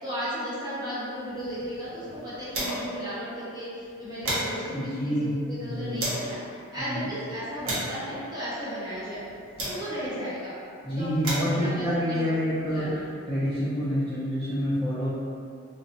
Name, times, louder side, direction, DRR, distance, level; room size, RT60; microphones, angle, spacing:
voice 1, 0.0-6.4 6.7-9.2 9.7-10.5 10.9-12.3 12.6-13.0, equal, 20° right, -11 dB, 0.7 m, -35 dB
sound 1, 1.2-3.1 3.4-3.5 3.8-6.3 7.0-10.2 10.9-13.1, right 1 dB, 90° right, 0.7 m, -36 dB
voice 2, 4.7-5.3 5.6-6.1 6.8-7.1 10.8-12.9 13.3-15.1, equal, 5° left, -14 dB, 0.3 m, -27 dB
2.5 x 2.0 x 2.6 m, 2.4 s
head